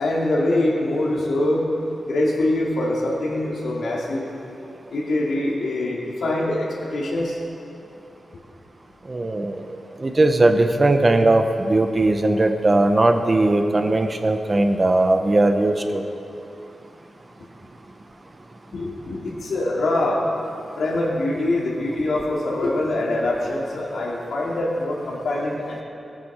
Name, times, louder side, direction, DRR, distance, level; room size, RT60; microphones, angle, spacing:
voice 1, 0.0-1.7 2.1-4.3 4.9-7.4 18.7-20.2 20.8-25.8, left 1 dB, 85° left, -3 dB, 2.7 m, -24 dB
voice 2, 9.1-9.7 10.0-16.0, right 2 dB, 25° right, 6 dB, 0.8 m, -19 dB
19.0 x 9.6 x 5.0 m, 2.8 s
wide cardioid pair, 155°, 0 cm